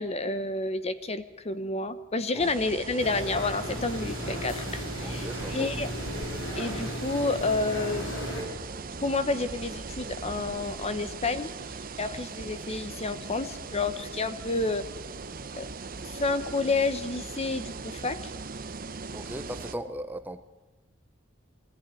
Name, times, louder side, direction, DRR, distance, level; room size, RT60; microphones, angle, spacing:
voice 1, 0.0-5.9 6.6-8.2 9.0-11.5 12.0-14.8 15.6-15.7 16.2-18.2, left 3 dB, 30° left, 12 dB, 0.9 m, -30 dB
sound 1, 2.4-19.7, right 4 dB, 45° right, 0.8 m, -39 dB
sound 2, 3.0-8.4, equal, 85° left, 5.3 m, -35 dB
voice 2, 5.0-5.7 8.9-9.0 19.1-20.5, right 1 dB, 10° right, 9 dB, 0.7 m, -38 dB
21.5 x 14.5 x 9.1 m, 1.2 s
head